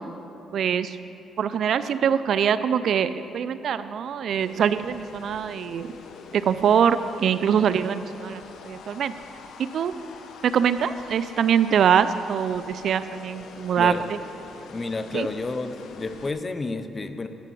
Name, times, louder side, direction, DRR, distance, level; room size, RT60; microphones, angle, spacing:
voice 1, 0.5-1.0 1.4-5.9 6.3-8.4 8.7-9.1 9.6-9.9 10.4-13.9 15.1-15.3, right 8 dB, 65° right, 13 dB, 0.4 m, -23 dB
sound 1, 4.3-16.3, left 5 dB, 70° left, 0.7 m, -45 dB
voice 2, 14.7-17.3, left 3 dB, 30° left, 10 dB, 0.6 m, -30 dB
11.0 x 6.7 x 6.1 m, 2.8 s
cardioid pair, 90°, 0 cm